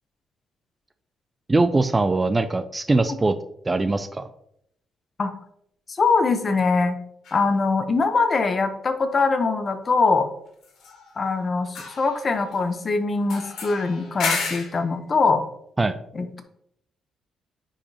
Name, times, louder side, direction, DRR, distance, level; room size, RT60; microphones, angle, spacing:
voice 1, 1.5-3.3 3.7-4.2 15.8-15.9, right 2 dB, 20° right, 10 dB, 0.4 m, -21 dB
voice 2, 6.0-6.9 7.3-10.3 11.2-15.4 16.1-16.4, left 4 dB, 35° left, 8 dB, 0.9 m, -22 dB
sound 1, 7.2-7.4 10.6-11.4 11.6-12.8 13.3-14.8, left 4 dB, 80° left, 1.8 m, -32 dB
9.8 x 4.9 x 2.9 m, 0.73 s
cardioid pair, 110°, 0 cm